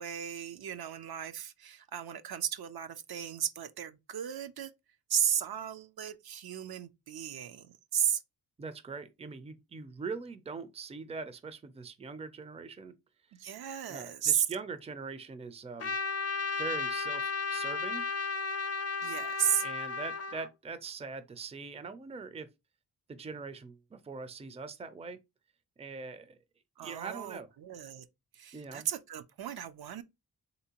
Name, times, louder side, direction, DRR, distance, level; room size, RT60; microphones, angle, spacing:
voice 1, 0.0-4.7 5.1-8.2 13.4-14.5 19.0-19.7 26.8-28.1 28.3-30.0, right 9 dB, 65° right, 0.5 m, -34 dB
voice 2, 8.6-12.9 13.9-16.0 16.6-18.0 19.6-22.5 23.1-25.2 25.8-26.4 26.8-27.5 28.5-28.9, right 4 dB, 15° right, 0.4 m, -42 dB
Trumpet, 15.8-20.5, left 4 dB, 40° left, 0.6 m, -34 dB
3.3 x 2.7 x 2.8 m
cardioid pair, 55°, 40 cm